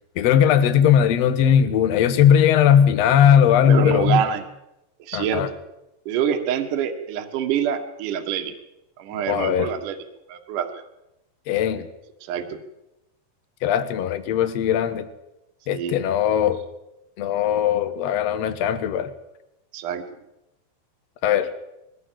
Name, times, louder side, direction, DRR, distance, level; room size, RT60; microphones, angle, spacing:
voice 1, 0.1-4.2 5.1-5.5 9.3-9.7 11.5-11.9 13.6-15.1 15.7-16.6 17.2-19.1 21.2-21.5, left 9 dB, 70° left, 9 dB, 1.6 m, -19 dB
voice 2, 3.7-4.4 5.1-5.4 6.1-8.5 9.0-10.0 10.3-10.8 12.3-12.6 15.7-16.0 19.7-20.0, right 8 dB, 60° right, 6 dB, 2.7 m, -26 dB
21.5 x 17.0 x 7.6 m, 0.91 s
omnidirectional pair, 4.7 m